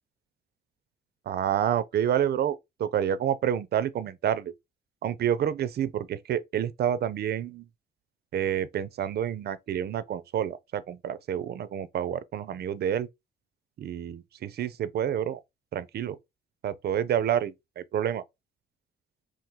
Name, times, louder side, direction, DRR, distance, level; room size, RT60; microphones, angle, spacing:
voice 1, 1.3-4.5 5.0-7.6 8.3-13.1 13.8-15.4 15.7-16.2 16.6-18.2, right 9 dB, 55° right, 0.5 m, -28 dB
2.8 x 2.5 x 3.6 m
cardioid pair, 90°, 20 cm